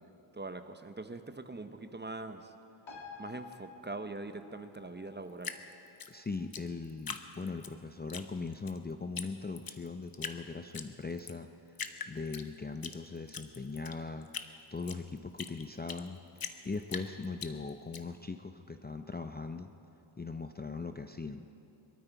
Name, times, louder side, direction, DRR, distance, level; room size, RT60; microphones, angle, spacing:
voice 1, 0.3-2.5 3.2-5.6, right 2 dB, 20° right, 9 dB, 0.7 m, -42 dB
sound 1, 2.9-9.8 10.2-10.3, left 4 dB, 60° left, 2.0 m, -54 dB
Drip, 5.4-7.7 8.1-8.8 9.2-9.3 9.6-10.4 10.7-11.4 11.7-13.0 13.3-16.1 16.4-18.0, left 6 dB, 45° left, 0.9 m, -41 dB
voice 2, 6.1-11.8 12.1-14.3 14.7-16.2 16.6-19.7 20.2-21.5, left 4 dB, 20° left, 7 dB, 0.5 m, -40 dB
23.0 x 13.0 x 4.6 m, 2.9 s
wide cardioid pair, 90°, 49 cm